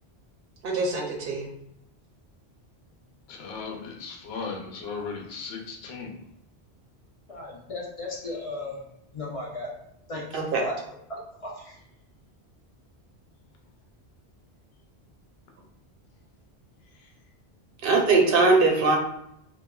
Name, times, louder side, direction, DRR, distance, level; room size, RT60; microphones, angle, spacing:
voice 1, 0.6-1.5 10.3-10.6 17.8-19.0, right 3 dB, 65° right, 1 dB, 0.7 m, -21 dB
voice 2, 3.3-6.1, left 4 dB, 75° left, 1 dB, 0.8 m, -36 dB
voice 3, 7.3-8.8 9.1-9.7 10.1-10.7 11.1-11.7, left 1 dB, 45° left, -4 dB, 0.5 m, -35 dB
3.0 x 2.1 x 2.2 m, 0.77 s
omnidirectional pair, 1.1 m